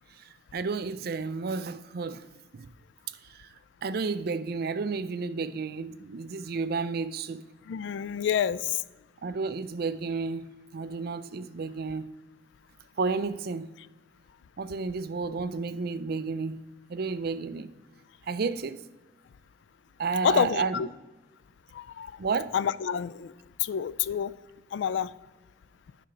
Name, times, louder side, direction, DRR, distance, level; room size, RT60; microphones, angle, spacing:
voice 1, 0.5-2.2 2.5-2.7 3.3-3.5 3.8-7.4 9.2-12.1 13.0-13.7 14.6-16.6 16.9-17.7 18.3-18.8 20.0-20.9 22.2-22.5, right 4 dB, 55° right, 0.4 m, -31 dB
voice 2, 7.7-8.8 20.2-20.9 21.7-22.1 22.5-23.3 23.6-24.3 24.7-25.1, left 8 dB, 70° left, 0.3 m, -28 dB
10.0 x 5.7 x 3.8 m
head